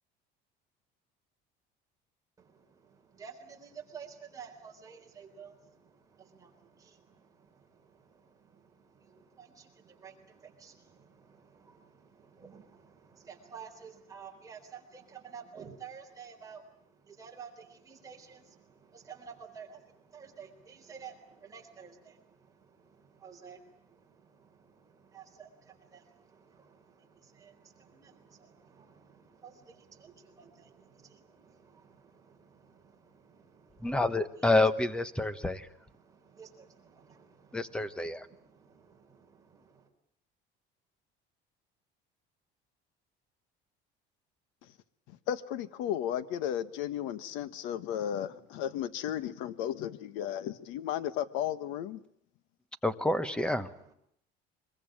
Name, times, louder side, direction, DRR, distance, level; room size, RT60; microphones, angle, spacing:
voice 1, 2.4-34.5 35.2-39.9 53.3-53.9, right 6 dB, 15° right, 4.0 m, -52 dB
voice 2, 33.8-35.7 37.5-38.3 52.8-53.7, left 2 dB, 5° left, 1.1 m, -28 dB
voice 3, 45.1-52.0, left 10 dB, 80° left, 1.4 m, -34 dB
24.5 x 22.5 x 8.9 m
cardioid pair, 165°, 20 cm